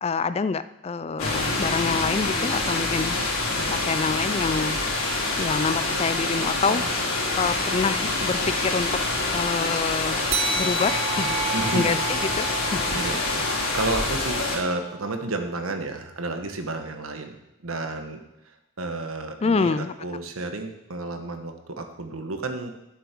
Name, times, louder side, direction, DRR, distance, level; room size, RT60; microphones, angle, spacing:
voice 1, 0.0-3.4 3.7-4.8 5.4-6.8 7.3-9.0 9.3-10.3 10.5-13.0 19.4-19.9, left 4 dB, 30° left, 14 dB, 0.3 m, -27 dB
sound 1, 1.2-14.6, left 2 dB, 80° left, 3.3 m, -26 dB
sound 2, 10.3-15.2, right 4 dB, 30° right, 0.6 m, -32 dB
voice 2, 11.5-11.9 12.9-13.2 13.7-18.2 18.8-22.7, right 2 dB, 80° right, 6 dB, 1.4 m, -31 dB
10.5 x 7.5 x 6.1 m, 0.92 s
head